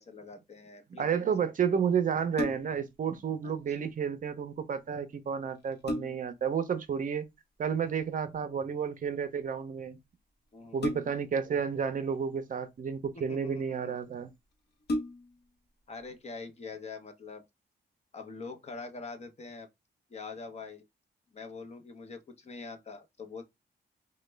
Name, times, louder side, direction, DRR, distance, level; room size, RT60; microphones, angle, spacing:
voice 1, 0.0-1.3 3.7-3.8 10.5-10.8 13.3-13.9 15.9-17.4 18.1-19.7 20.1-20.8 21.3-23.4, left 4 dB, 40° left, 0.7 m, -44 dB
voice 2, 0.9-7.2 7.6-10.0 10.7-14.3, right 7 dB, 50° right, 0.5 m, -31 dB
sound 1, 2.3-2.9 4.9-5.0 5.5-6.4 8.0-8.3 10.8-11.4 12.4-13.1 13.8-13.9 14.2-14.3 14.8-15.5 16.0-16.1, left 1 dB, 70° left, 0.9 m, -35 dB
3.0 x 2.2 x 3.2 m
wide cardioid pair, 130°, 18 cm